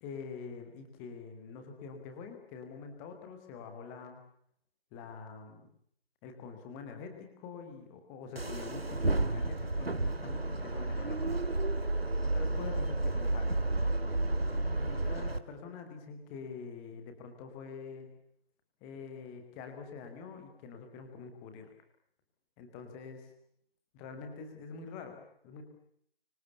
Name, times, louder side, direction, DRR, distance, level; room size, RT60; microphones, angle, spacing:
voice 1, 0.0-4.2 4.9-5.7 6.2-11.4 12.2-13.8 14.5-18.1 18.8-21.7 22.6-23.3 23.9-25.6, left 5 dB, 5° left, 6 dB, 0.9 m, -45 dB
sound 1, 8.4-15.4, right 2 dB, 75° right, 2.2 m, -31 dB
24.5 x 24.5 x 6.7 m, 0.68 s
figure-of-eight pair, 155°, 30 cm